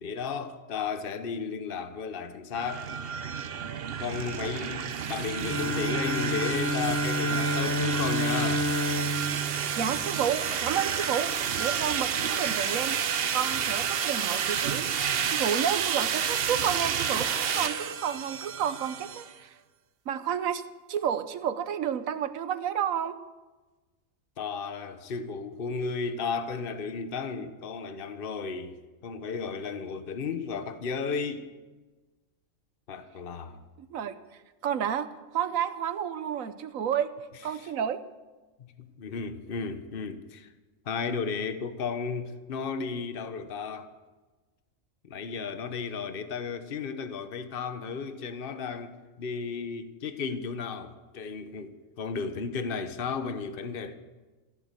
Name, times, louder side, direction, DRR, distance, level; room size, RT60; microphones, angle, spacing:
voice 1, 0.0-2.9 4.0-8.7 24.4-31.5 32.9-33.6 37.5-37.7 38.6-40.5 40.8-43.9 45.0-53.9, left 5 dB, 45° left, 1.1 m, -34 dB
sound 1, 2.5-19.3, right 8 dB, 55° right, 0.9 m, -30 dB
Bowed string instrument, 5.4-10.9, left 1 dB, 15° left, 0.8 m, -30 dB
voice 2, 9.8-13.0 13.3-14.9 15.3-19.5 20.1-20.6 20.9-23.1 33.8-34.2 34.6-35.1 35.3-37.1 37.4-38.0, right 9 dB, 80° right, 1.3 m, -30 dB
15.0 x 10.5 x 8.2 m
omnidirectional pair, 1.4 m